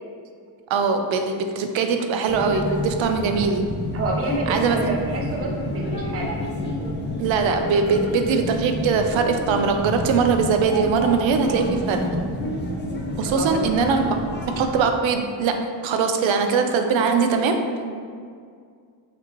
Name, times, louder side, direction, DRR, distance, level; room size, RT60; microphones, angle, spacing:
voice 1, 0.7-3.7 4.5-4.9 7.2-12.1 13.2-14.2 14.6-15.5 15.8-17.6, right 5 dB, 85° right, 5 dB, 0.6 m, -21 dB
sound 1, 2.3-14.8, left 1 dB, 25° left, 0.4 m, -29 dB
voice 2, 3.9-6.4 13.3-13.8, right 2 dB, 30° right, -1 dB, 0.5 m, -29 dB
5.9 x 2.9 x 2.9 m, 2.2 s
wide cardioid pair, 175°, 45 cm